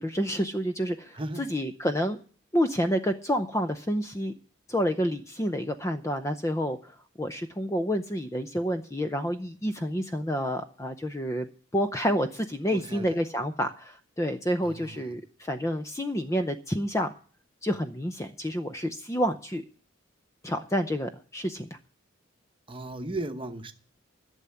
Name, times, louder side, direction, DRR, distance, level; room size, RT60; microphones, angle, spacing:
voice 1, 0.0-2.2 2.5-4.3 4.7-17.1 17.6-19.6 20.4-21.7, equal, 15° left, 0.6 m, -29 dB
voice 2, 1.1-1.5 12.7-13.2 14.6-15.1 22.7-23.7, right 2 dB, 25° right, 1.0 m, -36 dB
12.0 x 7.0 x 9.7 m
head